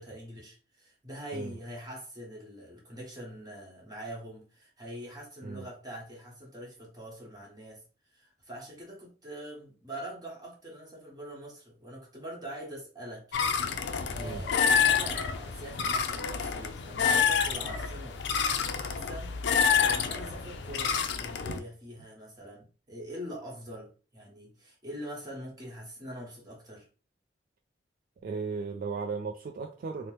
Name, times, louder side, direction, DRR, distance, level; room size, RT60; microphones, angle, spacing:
voice 1, 0.0-7.8 8.1-13.5 14.1-18.2 18.8-26.9, equal, 25° right, 1.1 m, -43 dB
sound 1, 13.3-21.6, left 6 dB, 70° left, 0.4 m, -28 dB
voice 2, 28.2-30.1, right 4 dB, 55° right, 0.3 m, -36 dB
2.9 x 2.0 x 3.1 m
head